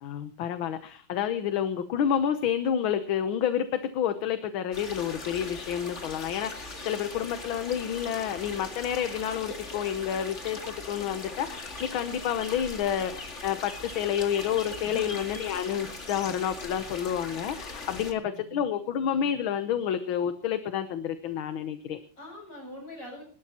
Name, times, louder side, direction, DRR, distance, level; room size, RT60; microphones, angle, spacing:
voice 1, 0.0-22.0, left 9 dB, 80° left, 10 dB, 1.7 m, -29 dB
sound 1, 4.7-18.1, left 3 dB, 35° left, 2.3 m, -40 dB
voice 2, 14.8-15.1 17.9-18.6 22.2-23.2, left 1 dB, 60° left, 1 dB, 8.1 m, -44 dB
26.0 x 12.5 x 2.9 m, 0.43 s
omnidirectional pair, 2.2 m